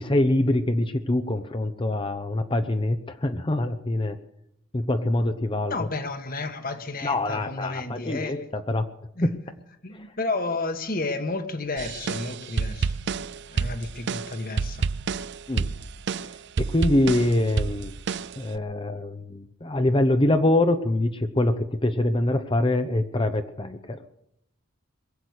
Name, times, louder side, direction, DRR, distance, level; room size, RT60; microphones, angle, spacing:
voice 1, 0.0-4.2 4.7-5.9 7.0-8.9 9.2-9.4 9.9-10.0 15.5-15.8 16.2-16.3 16.6-17.9 18.4-24.0, left 1 dB, 25° left, 8 dB, 0.8 m, -24 dB
voice 2, 5.7-8.5 9.2-9.3 9.8-12.9 13.5-14.9, left 3 dB, 45° left, 8 dB, 1.5 m, -31 dB
sound 1, 11.8-18.6, right 5 dB, 60° right, 0.5 m, -29 dB
22.0 x 8.0 x 8.2 m, 0.77 s
head